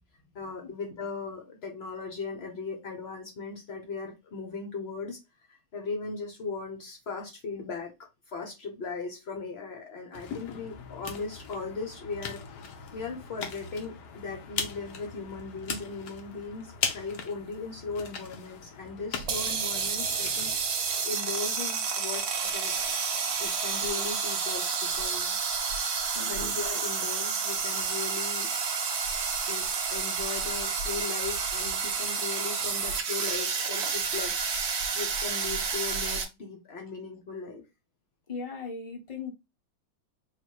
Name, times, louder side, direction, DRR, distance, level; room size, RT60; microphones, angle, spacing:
voice 1, 0.3-5.2 5.5-7.9 8.3-12.4 12.7-22.7 23.4-25.4 25.7-25.8 26.2-28.5 29.5-34.4 34.9-37.6, left 4 dB, 90° left, 2 dB, 0.5 m, -38 dB
sound 1, 10.1-20.5, left 6 dB, 65° left, 1.2 m, -39 dB
sound 2, 19.2-36.3, right 5 dB, 60° right, 1.2 m, -30 dB
voice 2, 26.1-26.5 38.3-39.3, left 4 dB, 30° left, 1 dB, 0.7 m, -38 dB
4.1 x 2.1 x 4.5 m, 0.24 s
omnidirectional pair, 2.3 m